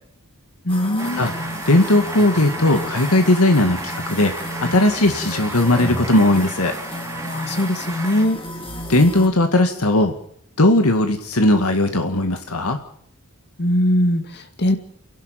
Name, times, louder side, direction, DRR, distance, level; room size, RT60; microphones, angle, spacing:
voice 1, 0.6-1.3 7.3-8.4 13.6-14.8, left 1 dB, 50° left, 6 dB, 2.3 m, -20 dB
sound 1, 0.7-9.3, left 1 dB, 25° left, 3.2 m, -32 dB
sound 2, 1.0-8.3, right 2 dB, 15° right, 3.8 m, -33 dB
voice 2, 1.7-4.3 4.6-6.7 8.9-10.1 10.6-12.8, left 1 dB, 80° left, 6 dB, 2.1 m, -17 dB
29.0 x 11.5 x 9.2 m, 0.65 s
head